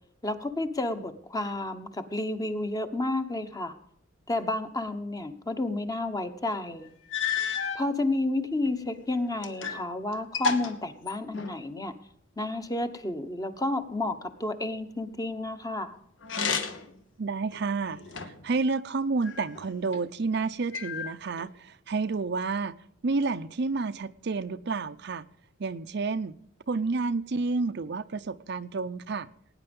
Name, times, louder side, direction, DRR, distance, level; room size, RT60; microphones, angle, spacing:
voice 1, 0.2-3.8 4.3-6.9 7.7-11.9 12.4-16.0, left 2 dB, 20° left, 7 dB, 1.1 m, -31 dB
sound 1, 6.5-6.6 7.1-7.9 8.6-9.9 10.1-11.7 16.2-17.0 17.5-18.5 19.2-20.0 20.7-21.5, left 5 dB, 70° left, 1.3 m, -32 dB
voice 2, 17.2-18.0 18.4-22.7 23.0-25.2 25.6-26.4 26.7-29.3, right 4 dB, 60° right, 11 dB, 0.6 m, -30 dB
18.0 x 9.7 x 5.3 m, 0.71 s
head